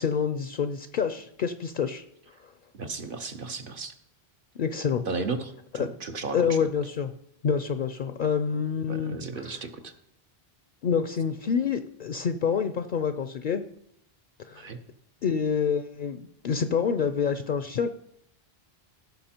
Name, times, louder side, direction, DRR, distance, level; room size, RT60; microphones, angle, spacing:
voice 1, 0.0-2.0 4.6-5.0 5.8-5.9 6.3-7.1 7.4-9.6 10.8-13.6 14.5-14.7 15.2-17.9, left 6 dB, 60° left, 10 dB, 0.7 m, -27 dB
voice 2, 2.8-3.9 5.1-6.6 8.9-9.9 14.6-14.8, right 4 dB, 60° right, 6 dB, 1.1 m, -34 dB
16.0 x 5.9 x 4.4 m, 0.76 s
omnidirectional pair, 1.0 m